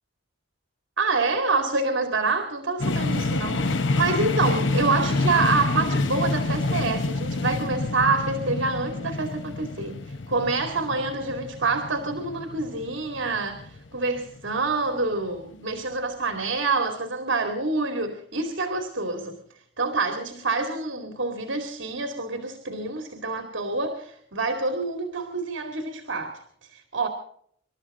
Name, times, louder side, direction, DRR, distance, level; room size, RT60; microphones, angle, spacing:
voice 1, 1.0-19.4 19.8-26.4 26.7-27.1, right 3 dB, 75° right, 5 dB, 2.5 m, -27 dB
sound 1, 2.8-14.6, left 2 dB, 70° left, 0.9 m, -27 dB
27.5 x 12.5 x 3.8 m, 0.65 s
head